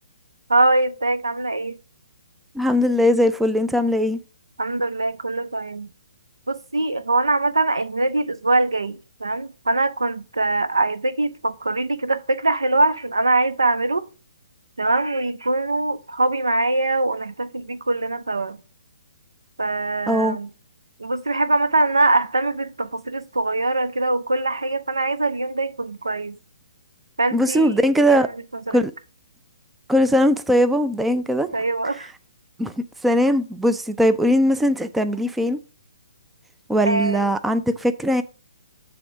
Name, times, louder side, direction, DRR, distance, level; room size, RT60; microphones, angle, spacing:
voice 1, 0.5-1.8 4.6-5.9 6.5-14.1 14.8-18.6 19.6-20.5 21.0-26.4 27.2-27.8 28.1-28.3 28.7-28.8 31.5-32.1 36.8-37.3, right 2 dB, 75° right, 0.6 m, -22 dB
voice 2, 2.5-4.2 20.1-20.4 27.3-28.3 28.7-28.9 29.9-31.5 32.6-32.7 33.0-35.6 36.7-38.2, equal, 5° right, 0.4 m, -19 dB
7.7 x 3.5 x 5.8 m
figure-of-eight pair, 130°, 2 cm